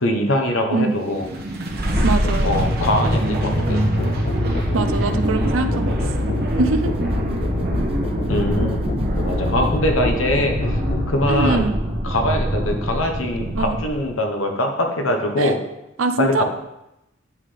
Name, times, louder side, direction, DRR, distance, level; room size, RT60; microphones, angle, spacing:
voice 1, 0.0-1.2 2.4-3.9 8.3-8.8 9.2-10.8 11.1-11.7 12.0-15.6 16.2-16.4, left 1 dB, 70° left, 3 dB, 1.0 m, -22 dB
sound 1, 1.0-14.1, equal, 50° right, 1.0 m, -24 dB
Musical instrument, 2.0-11.2, left 4 dB, 45° left, 0.4 m, -29 dB
voice 2, 2.0-2.6 4.7-6.3 6.6-7.0 11.3-11.8 13.5-13.8 15.4-15.5 16.0-16.4, right 3 dB, 75° right, 10 dB, 0.5 m, -23 dB
sound 2, 3.0-9.8, right 2 dB, 30° right, 0.4 m, -30 dB
9.8 x 3.8 x 3.3 m, 0.89 s
head